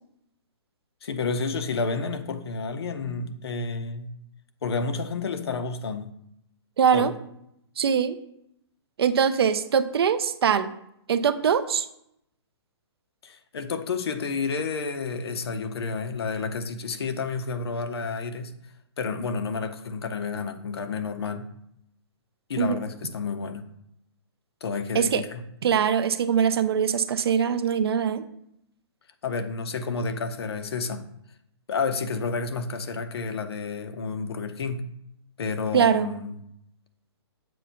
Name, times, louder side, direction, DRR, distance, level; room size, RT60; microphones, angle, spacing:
voice 1, 1.0-4.1 4.6-6.1 6.9-7.1 13.2-18.5 19.0-21.5 22.5-23.6 24.6-25.4 29.2-31.0 31.7-34.8 35.4-36.4, left 4 dB, 60° left, 9 dB, 0.6 m, -30 dB
voice 2, 6.8-7.1 7.8-8.2 9.0-10.7 11.1-11.9 22.6-22.8 24.9-25.2 25.6-28.2 35.7-36.1, right 7 dB, 60° right, 12 dB, 0.4 m, -22 dB
7.5 x 2.5 x 5.6 m, 0.77 s
hypercardioid pair, 175°, 15 cm